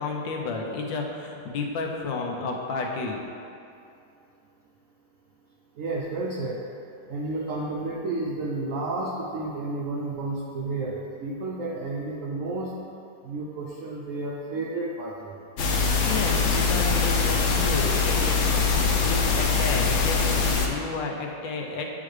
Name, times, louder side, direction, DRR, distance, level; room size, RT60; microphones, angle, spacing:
voice 1, 0.0-3.2 16.1-21.8, left 3 dB, 85° left, 1 dB, 1.5 m, -31 dB
voice 2, 5.8-6.6 7.1-12.7 13.2-15.4, right 2 dB, 70° right, -3 dB, 0.7 m, -31 dB
sound 1, 15.6-20.7, left 4 dB, 65° left, 0.8 m, -23 dB
9.5 x 3.8 x 3.2 m, 2.6 s
omnidirectional pair, 2.0 m